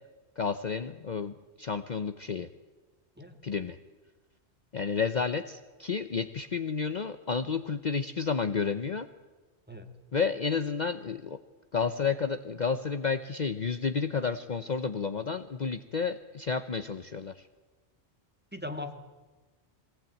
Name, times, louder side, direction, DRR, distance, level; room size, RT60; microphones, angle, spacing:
voice 1, 0.4-2.5 3.4-3.8 4.7-9.1 10.1-11.4 11.7-17.5, left 5 dB, 45° left, 10 dB, 0.9 m, -31 dB
voice 2, 18.5-18.9, left 2 dB, 10° right, 6 dB, 1.9 m, -39 dB
22.0 x 17.5 x 9.2 m, 1.2 s
omnidirectional pair, 1.1 m